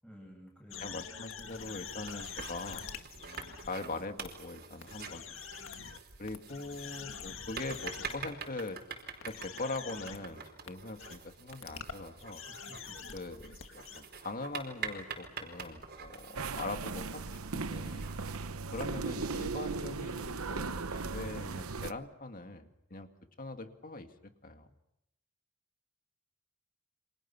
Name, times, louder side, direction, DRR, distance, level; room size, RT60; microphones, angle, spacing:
voice 1, 0.0-1.0 12.5-13.0, equal, 5° left, 0 dB, 7.5 m, -53 dB
sound 1, 0.7-3.7 4.2-4.3 4.8-6.0 6.3-8.2 8.6-8.7 9.2-10.2 10.7-10.8 11.0-11.2 11.5-14.0, left 7 dB, 65° left, 1.9 m, -45 dB
voice 2, 0.8-2.9 3.2-5.4 6.2-8.8 9.3-12.4 13.1-18.1 18.7-23.1 23.4-24.1 24.4-24.7, left 2 dB, 40° left, 6 dB, 2.1 m, -42 dB
sound 2, 1.9-18.2, right 5 dB, 50° right, 4.7 m, -46 dB
sound 3, 16.4-21.9, right 4 dB, 90° right, 0.9 m, -37 dB
29.5 x 26.0 x 6.0 m, 0.83 s
head